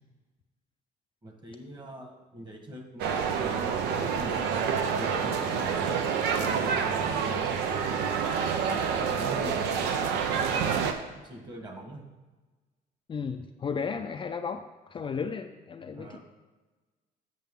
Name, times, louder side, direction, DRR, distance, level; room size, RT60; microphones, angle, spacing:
voice 1, 1.2-6.2 6.6-7.5 8.1-12.0 15.9-16.2, right 1 dB, 25° right, 3 dB, 1.5 m, -43 dB
sound 1, 3.0-10.9, right 6 dB, 85° right, 0.7 m, -28 dB
voice 2, 13.1-16.2, left 5 dB, 30° left, 6 dB, 0.4 m, -34 dB
7.5 x 7.3 x 3.7 m, 1.2 s
cardioid pair, 110°, 17 cm